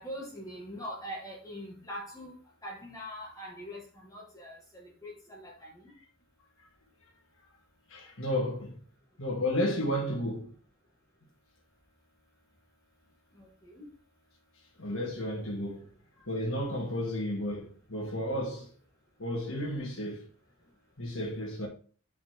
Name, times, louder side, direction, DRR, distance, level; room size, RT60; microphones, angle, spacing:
voice 1, 0.0-2.3 2.6-5.8 13.4-13.9, equal, 15° left, 2.0 m, -43 dB
voice 2, 7.9-8.8 9.2-10.5 14.8-15.9 16.3-18.7 19.2-20.3 21.0-21.7, left 1 dB, 80° left, 2.3 m, -32 dB
5.9 x 4.3 x 4.7 m
head